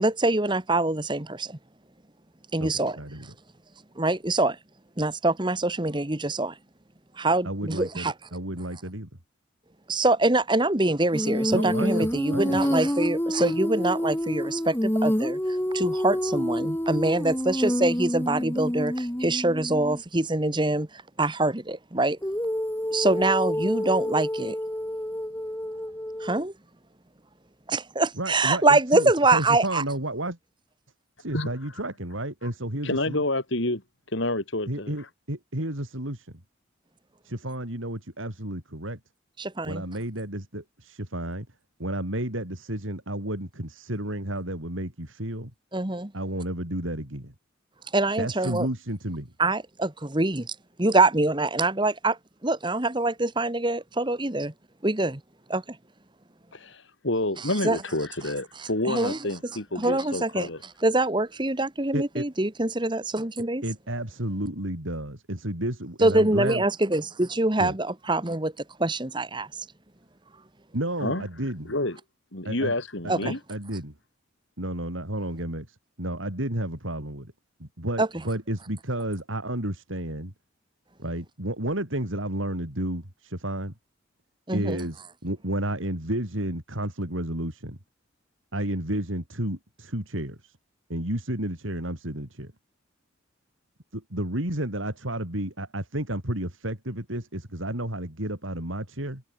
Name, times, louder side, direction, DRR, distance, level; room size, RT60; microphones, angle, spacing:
voice 1, 0.0-1.6 2.5-3.0 4.0-4.6 5.0-6.5 7.2-8.1 9.9-22.2 22.9-24.6 26.2-26.5 27.7-29.8 39.4-39.8 45.7-46.1 47.9-48.7 49.4-54.5 54.8-55.2 55.5-55.8 57.6-57.8 58.9-59.2 59.8-60.5 60.8-63.6 66.0-68.5 68.8-69.6 73.1-73.3 78.0-78.1 84.5-84.8, right 2 dB, 20° right, 1.4 m, -24 dB
voice 2, 2.6-3.3 7.4-9.1 11.5-12.6 28.2-30.4 31.2-33.2 34.7-36.3 37.2-39.0 39.6-41.5 41.8-45.5 46.1-47.3 48.2-49.3 61.9-62.3 63.6-66.6 67.6-67.7 70.7-71.7 72.4-72.7 73.0-73.9 74.6-77.3 77.6-80.3 81.0-83.7 84.5-87.8 88.5-90.6 90.9-92.5 93.9-99.2, right 1 dB, 75° right, 5.3 m, -31 dB
Female singing, 11.1-20.0 22.2-26.4, equal, 10° left, 1.7 m, -28 dB
voice 3, 32.8-33.8 34.1-34.9 56.5-60.6 71.0-71.3 71.7-72.0 72.3-73.4, left 1 dB, 65° left, 3.7 m, -28 dB
head